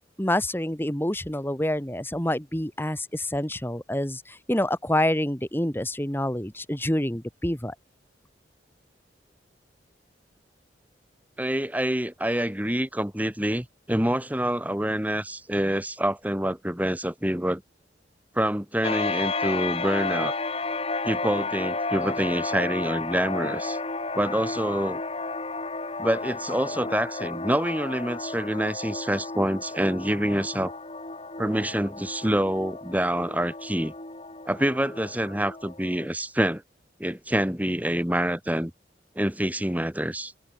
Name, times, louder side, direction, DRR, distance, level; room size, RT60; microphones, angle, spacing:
voice 1, 0.2-7.7, left 1 dB, 15° left, 3.4 m, -27 dB
voice 2, 11.4-17.6 18.4-20.4 21.0-23.8 24.1-25.0 26.0-30.7 31.4-33.9 34.5-36.6 37.0-38.7 39.2-40.3, right 1 dB, 10° right, 2.0 m, -26 dB
sound 1, 18.8-36.1, left 3 dB, 35° left, 2.9 m, -32 dB
head